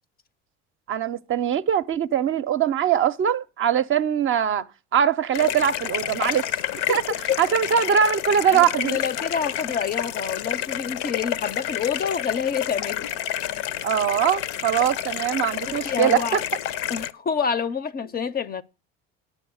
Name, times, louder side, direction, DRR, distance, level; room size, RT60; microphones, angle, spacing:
voice 1, 0.9-4.7 4.9-6.5 6.9-7.0 7.4-9.0 13.8-16.4, right 9 dB, 40° right, 0.5 m, -22 dB
sound 1, 5.3-17.1, left 11 dB, 70° left, 0.6 m, -29 dB
voice 2, 8.5-13.1 15.7-16.4 16.9-18.6, left 6 dB, 30° left, 0.5 m, -27 dB
8.8 x 6.3 x 6.2 m
supercardioid pair, 85°, 32 cm